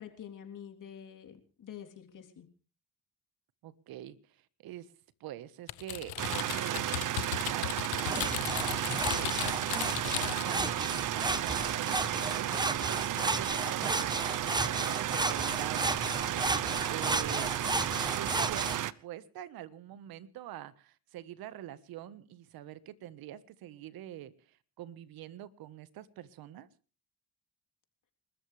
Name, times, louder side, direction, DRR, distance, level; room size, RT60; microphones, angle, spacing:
voice 1, 0.0-2.5, left 9 dB, 55° left, 5 dB, 3.6 m, -47 dB
voice 2, 3.6-4.9 5.2-8.3 9.1-14.2 14.5-17.5 18.1-26.7, right 12 dB, 75° right, 15 dB, 1.4 m, -45 dB
Typing, 5.7-10.6, left 19 dB, 85° left, 1.0 m, -37 dB
sound 1, 6.2-18.9, right 12 dB, 55° right, 0.9 m, -33 dB
sound 2, 8.0-18.8, right 2 dB, 10° right, 1.0 m, -34 dB
29.5 x 13.5 x 3.4 m, 0.36 s
supercardioid pair, 70°, 37 cm